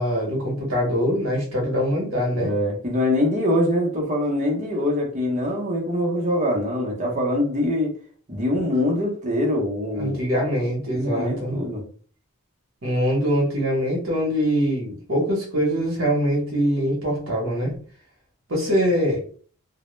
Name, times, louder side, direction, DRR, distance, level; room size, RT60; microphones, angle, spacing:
voice 1, 0.0-2.5 10.0-11.6 12.8-17.7 18.5-19.2, equal, 65° right, -3 dB, 0.8 m, -23 dB
voice 2, 2.4-7.9 8.3-10.2 10.9-11.8, left 1 dB, 35° right, 0 dB, 0.6 m, -23 dB
2.1 x 2.0 x 3.0 m, 0.43 s
head